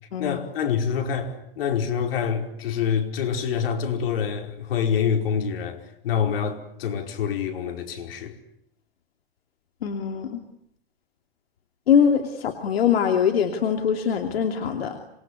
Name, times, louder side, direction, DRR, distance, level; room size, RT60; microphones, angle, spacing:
voice 1, 0.2-8.4, left 7 dB, 70° left, 5.0 m, -26 dB
voice 2, 9.8-10.4 11.9-15.0, left 7 dB, 90° left, 2.9 m, -22 dB
26.5 x 22.0 x 9.8 m
supercardioid pair, 145°, 30 cm